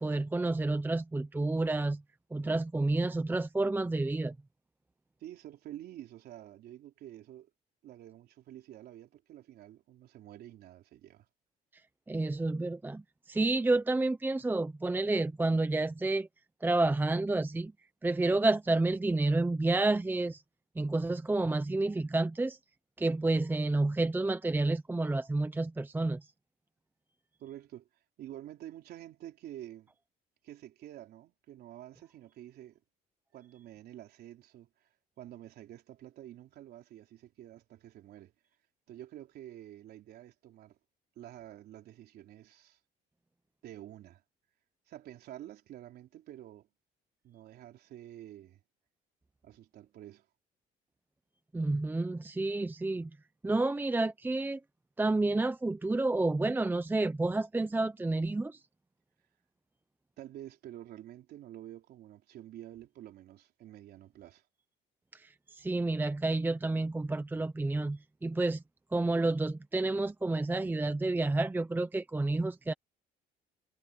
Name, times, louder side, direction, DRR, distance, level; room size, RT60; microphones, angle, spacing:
voice 1, 0.0-2.0 2.3-4.3 12.1-13.0 13.3-16.3 16.6-17.7 18.0-20.4 20.8-22.6 23.0-26.3 51.5-53.1 53.4-54.6 55.0-58.6 65.1-68.6 68.9-72.7, right 2 dB, 10° right, 0.8 m, -30 dB
voice 2, 5.2-7.5 7.8-11.3 27.4-29.9 30.4-32.8 33.3-38.3 38.9-40.8 41.2-42.8 43.6-44.2 44.9-46.7 47.2-48.6 49.4-50.3 60.2-64.5, right 12 dB, 70° right, 3.7 m, -49 dB
cardioid pair, 110°, 17 cm